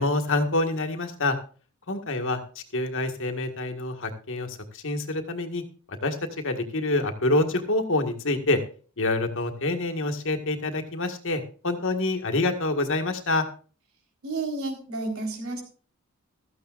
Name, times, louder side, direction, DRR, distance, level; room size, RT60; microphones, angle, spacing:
voice 1, 0.0-1.4 1.9-8.6 9.0-13.5, left 2 dB, 60° left, 6 dB, 1.8 m, -27 dB
voice 2, 14.2-15.6, right 2 dB, 75° right, 2 dB, 4.3 m, -31 dB
15.5 x 14.0 x 2.5 m, 0.39 s
head